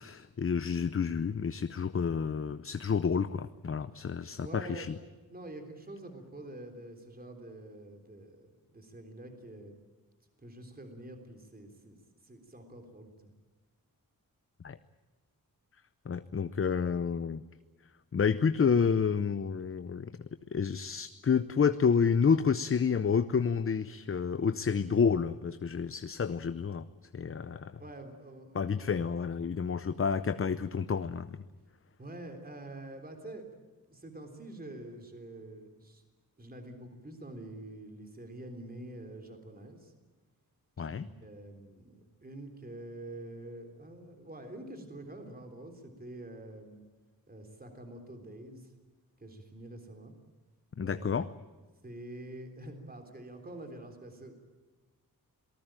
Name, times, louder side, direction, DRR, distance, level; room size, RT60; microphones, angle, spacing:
voice 1, 0.0-4.9 14.6-14.8 16.1-17.4 18.1-20.1 20.5-26.9 27.1-27.7 28.5-31.4 40.8-41.1 50.8-51.3, left 6 dB, 35° left, 12 dB, 0.7 m, -29 dB
voice 2, 4.4-4.9 5.3-9.7 10.4-12.0 12.2-13.3 27.8-28.9 32.0-33.6 33.9-36.0 36.4-39.9 40.8-46.8 47.3-48.7 49.2-50.1 50.8-51.2 51.8-54.3, right 1 dB, 25° right, 5 dB, 3.6 m, -46 dB
27.0 x 19.0 x 9.0 m, 1.3 s
wide cardioid pair, 145°, 36 cm